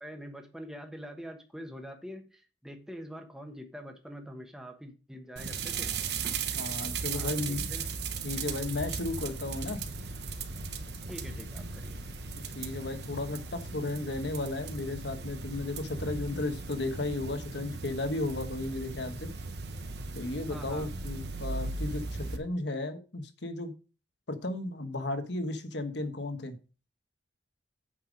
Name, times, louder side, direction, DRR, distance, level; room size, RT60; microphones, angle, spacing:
voice 1, 0.0-5.9 7.1-7.9 11.1-12.0 20.5-20.9, equal, 5° right, 4 dB, 1.2 m, -44 dB
sound 1, 5.4-22.4, right 4 dB, 60° right, 1.0 m, -37 dB
voice 2, 6.5-7.6 8.2-9.8 12.5-19.3 20.1-23.8 24.3-26.6, left 2 dB, 70° left, 8 dB, 1.3 m, -34 dB
8.6 x 5.7 x 5.2 m, 0.34 s
head